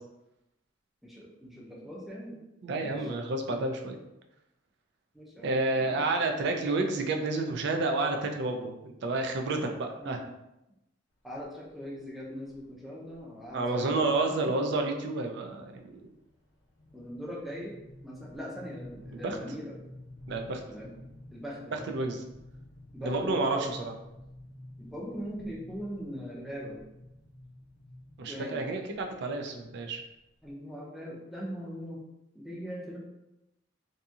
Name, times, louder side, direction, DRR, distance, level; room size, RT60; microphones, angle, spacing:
voice 1, 1.0-2.4 2.7-3.1 5.1-6.1 10.0-10.2 11.2-14.5 16.9-17.8 18.0-19.7 20.7-20.9 21.3-22.1 22.9-23.7 24.8-26.8 28.3-28.6 30.4-32.0 32.3-33.0, equal, ahead, -4 dB, 0.5 m, -41 dB
voice 2, 2.6-4.0 5.4-10.2 13.5-16.1 19.1-19.4 20.3-20.6 21.7-22.2 23.0-23.9 28.2-30.0, right 2 dB, 60° right, 4 dB, 0.4 m, -30 dB
sound 1, 11.4-11.7 12.5-12.7 13.1-13.2 13.5-13.8 14.2-30.5, left 1 dB, 60° left, 0.7 m, -51 dB
2.7 x 2.6 x 2.3 m, 0.91 s
head